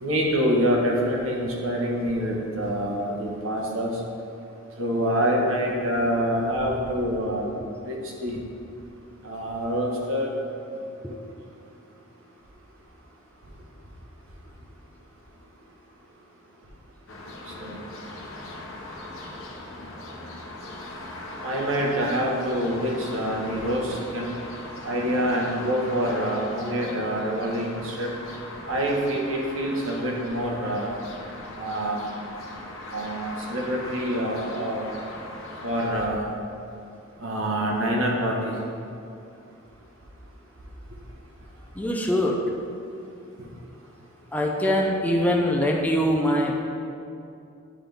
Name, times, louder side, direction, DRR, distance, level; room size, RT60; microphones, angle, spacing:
voice 1, 0.0-4.0 4.8-7.5 7.9-8.4 9.2-10.3 11.1-11.2 17.5-17.8 21.4-24.3 24.8-28.1 28.7-30.9 31.6-32.1 32.9-34.9 35.6-36.2 37.2-38.5 43.4-43.5, equal, 80° right, -2 dB, 1.1 m, -26 dB
sound 1, 17.1-36.1, left 1 dB, 75° left, 0.9 m, -39 dB
voice 2, 41.8-42.4 44.3-46.5, equal, 10° left, 0 dB, 0.5 m, -23 dB
9.8 x 3.9 x 3.4 m, 2.6 s
head